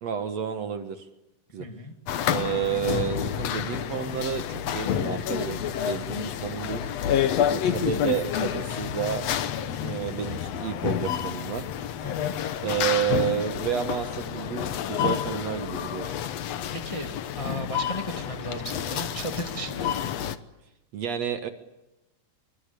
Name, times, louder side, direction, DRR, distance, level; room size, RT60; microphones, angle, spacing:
voice 1, 0.0-1.1 1.5-1.7 2.3-6.8 7.5-9.2 9.6-11.7 12.6-16.2 20.9-21.5, right 8 dB, 60° right, 9 dB, 2.4 m, -30 dB
voice 2, 1.6-1.9 12.0-12.3 16.7-19.9, equal, 10° left, 5 dB, 1.7 m, -35 dB
sound 1, 2.1-20.4, left 9 dB, 60° left, 1.9 m, -29 dB
26.0 x 24.5 x 8.4 m, 0.96 s
omnidirectional pair, 3.8 m